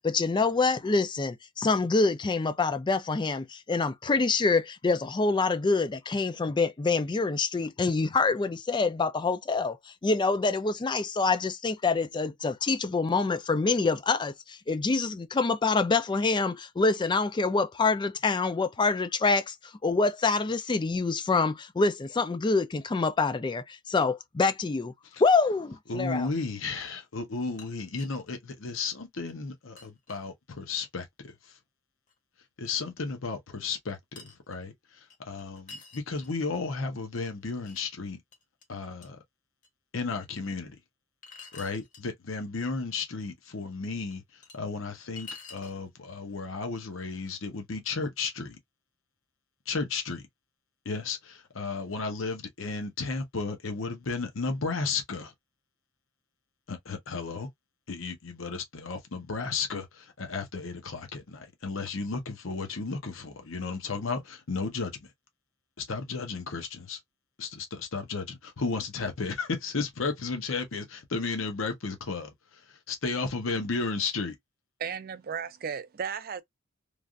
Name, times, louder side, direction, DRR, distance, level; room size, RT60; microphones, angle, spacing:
voice 1, 0.0-19.6 19.8-24.9 25.2-26.3, left 3 dB, 20° left, 0.3 m, -26 dB
voice 2, 25.9-31.6 32.6-38.2 38.7-39.2 39.9-40.8 41.5-48.6 49.7-50.2 50.8-55.3 56.7-57.5 57.9-65.1 65.8-67.0 67.4-74.4, left 4 dB, 70° left, 0.8 m, -34 dB
sound 1, 27.3-28.3 28.8-28.9 29.3-29.4 29.8-30.3 32.1-32.2 33.0-33.1 34.2-34.6 35.1-36.6 37.1-37.8 38.3-38.6 39.0-39.1 39.6-39.7 41.2-42.1 43.4-43.5 44.1-44.6 45.2-45.8, left 4 dB, 40° left, 1.0 m, -47 dB
voice 3, 74.8-76.4, right 7 dB, 45° right, 0.4 m, -35 dB
3.2 x 2.4 x 2.4 m
head